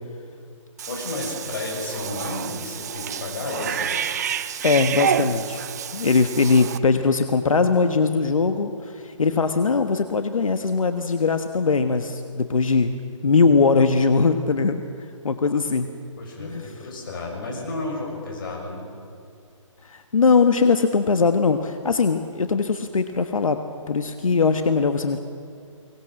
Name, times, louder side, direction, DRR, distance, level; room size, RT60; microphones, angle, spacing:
Cat / Bathtub (filling or washing), 0.8-6.8, right 8 dB, 30° right, 0.6 m, -29 dB
voice 1, 0.9-3.9 16.2-18.8, left 2 dB, 40° left, -1 dB, 6.8 m, -32 dB
voice 2, 4.6-5.6 5.9-12.9 13.2-14.8 15.2-15.9 16.4-16.7 19.8-23.6 23.9-25.2, left 4 dB, 85° left, 8 dB, 1.4 m, -20 dB
23.5 x 19.0 x 7.7 m, 2.3 s
hypercardioid pair, 165°, 17 cm